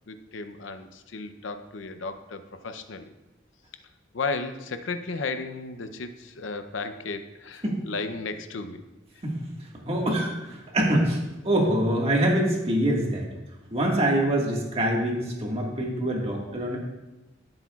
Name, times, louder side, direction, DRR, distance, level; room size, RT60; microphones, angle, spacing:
voice 1, 0.1-3.1 4.1-8.8, left 4 dB, 80° left, 9 dB, 0.7 m, -34 dB
voice 2, 9.8-13.2 13.7-16.8, right 1 dB, 30° right, -2 dB, 1.8 m, -25 dB
14.5 x 7.8 x 2.4 m, 1.0 s
head